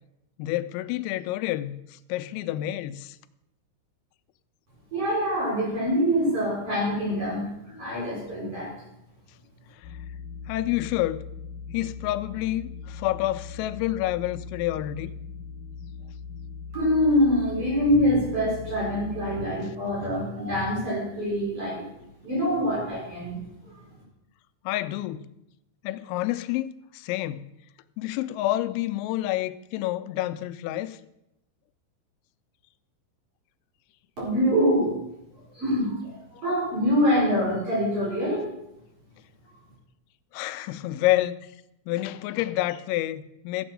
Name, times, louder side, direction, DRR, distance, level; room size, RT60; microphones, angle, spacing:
voice 1, 0.4-3.2 9.8-9.9 10.5-11.3 11.7-15.1 24.7-25.3 25.8-27.4 28.0-31.0 40.3-41.5 41.9-43.7, left 15 dB, 90° left, 3.3 m, -28 dB
voice 2, 4.9-8.7 16.7-21.8 22.2-23.8 34.2-35.0 35.5-38.4, equal, 30° right, 4.9 m, -25 dB
sound 1, 9.8-19.5, left 5 dB, 60° left, 2.7 m, -40 dB
13.5 x 8.0 x 6.1 m
omnidirectional pair, 5.8 m